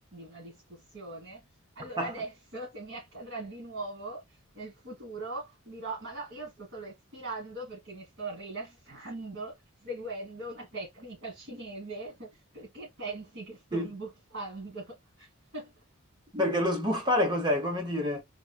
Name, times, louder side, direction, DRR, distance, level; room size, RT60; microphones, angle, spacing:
voice 1, 0.1-1.5 1.8-15.8, right 2 dB, 55° right, 1.7 m, -41 dB
voice 2, 16.3-18.2, left 1 dB, 20° right, 0.7 m, -27 dB
3.6 x 2.2 x 2.3 m
head